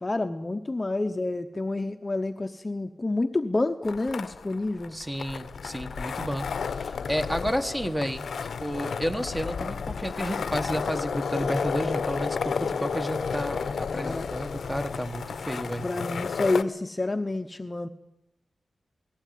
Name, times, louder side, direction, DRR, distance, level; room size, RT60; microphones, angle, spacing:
voice 1, 0.0-5.0 13.9-14.3 15.8-17.9, left 2 dB, 25° left, 7 dB, 1.0 m, -29 dB
sound 1, 3.9-16.6, left 6 dB, 80° left, 0.9 m, -32 dB
voice 2, 4.9-8.3 8.6-15.9, equal, 5° right, 7 dB, 1.4 m, -31 dB
19.0 x 16.0 x 9.4 m, 0.89 s
wide cardioid pair, 130°, 0 cm